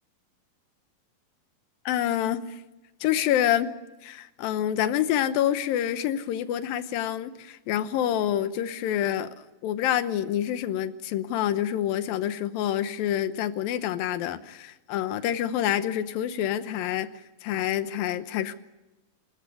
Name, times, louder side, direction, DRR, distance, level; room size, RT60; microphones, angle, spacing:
voice 1, 1.9-2.6 3.0-3.7 4.0-9.3 9.6-17.1 17.4-18.5, left 11 dB, 90° left, 12 dB, 2.8 m, -27 dB
26.5 x 14.5 x 9.8 m, 1.0 s
omnidirectional pair, 4.0 m